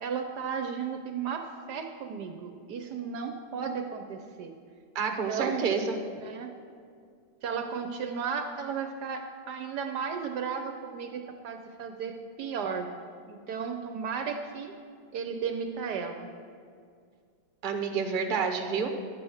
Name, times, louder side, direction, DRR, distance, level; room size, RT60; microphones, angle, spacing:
voice 1, 0.0-4.5 5.0-5.7 6.2-6.5 7.4-12.9 13.3-14.7 15.1-16.3, right 6 dB, 70° right, 6 dB, 1.1 m, -34 dB
voice 2, 4.9-5.9 17.6-18.9, right 5 dB, 40° right, 3 dB, 0.7 m, -29 dB
11.0 x 7.6 x 6.3 m, 2.2 s
omnidirectional pair, 2.2 m